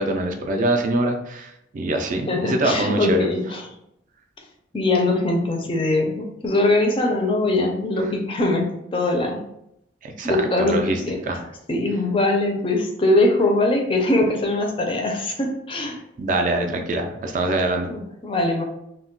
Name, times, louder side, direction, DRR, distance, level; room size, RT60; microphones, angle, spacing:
voice 1, 0.0-3.3 10.0-11.4 16.2-17.9, right 1 dB, 45° right, 4 dB, 0.3 m, -24 dB
voice 2, 2.3-3.7 4.7-9.4 10.2-11.2 11.7-16.0 17.9-18.6, left 2 dB, 30° left, 2 dB, 0.4 m, -22 dB
2.2 x 2.1 x 3.7 m, 0.79 s
head